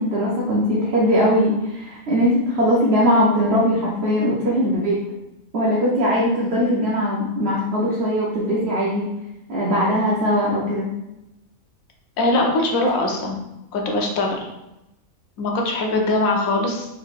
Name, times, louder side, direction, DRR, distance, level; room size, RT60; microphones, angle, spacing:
voice 1, 0.0-5.0 5.5-9.1 9.5-10.9, equal, 55° right, -5 dB, 0.9 m, -20 dB
voice 2, 12.2-13.4 13.7-14.4 15.4-16.9, left 2 dB, 75° left, 1 dB, 1.2 m, -21 dB
4.0 x 3.9 x 2.4 m, 0.92 s
omnidirectional pair, 1.5 m